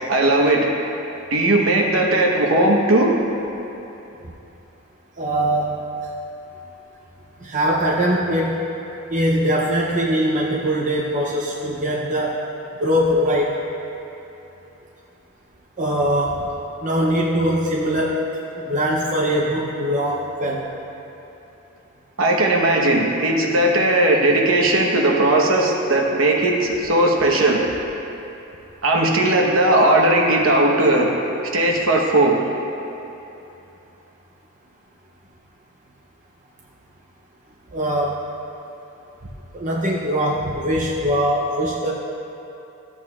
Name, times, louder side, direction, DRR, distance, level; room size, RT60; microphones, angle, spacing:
voice 1, 0.1-0.7 1.3-3.1 22.2-27.6 28.8-31.1 31.5-32.3, right 1 dB, 65° right, -1 dB, 1.1 m, -17 dB
voice 2, 5.2-5.8 7.4-8.6 9.1-12.4 12.8-13.6 15.8-16.4 16.8-18.2 18.6-20.7 37.7-38.2 39.5-41.9, equal, 35° right, -4 dB, 0.6 m, -21 dB
13.5 x 8.4 x 2.4 m, 3.0 s
head